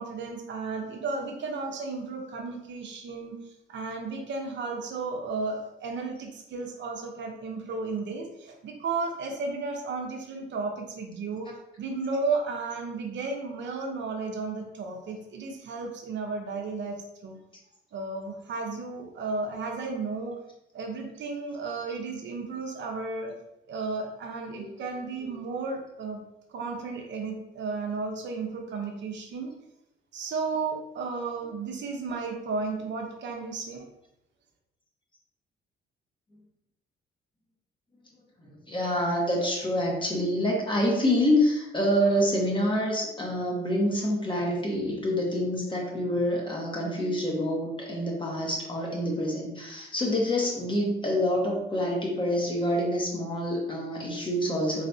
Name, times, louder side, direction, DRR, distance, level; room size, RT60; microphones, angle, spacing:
voice 1, 0.0-3.4 3.7-11.5 11.8-17.4 17.9-20.3 20.7-23.3 23.7-26.2 26.5-29.5 30.1-33.9, right 4 dB, 65° right, 2 dB, 0.7 m, -33 dB
voice 2, 38.4-54.9, equal, 25° left, -2 dB, 1.2 m, -27 dB
4.0 x 3.2 x 2.7 m, 0.86 s
cardioid pair, 90°, 20 cm